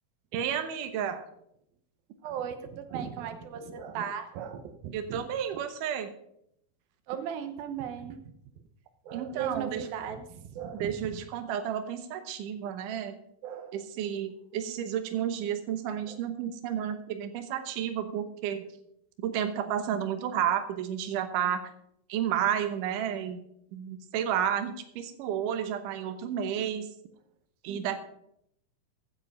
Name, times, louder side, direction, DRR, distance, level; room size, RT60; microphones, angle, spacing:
voice 1, 0.3-1.2 4.9-6.1 9.1-9.9 10.7-13.2 13.7-18.6 19.2-21.7 22.1-23.4 23.7-26.9 27.6-28.0, right 9 dB, 70° right, 8 dB, 2.5 m, -31 dB
voice 2, 2.2-5.2 7.1-8.2 9.1-10.9 13.4-13.7 16.1-16.2 27.7-27.9, right 8 dB, 90° right, 8 dB, 2.9 m, -37 dB
15.5 x 7.8 x 5.4 m, 0.74 s
omnidirectional pair, 4.1 m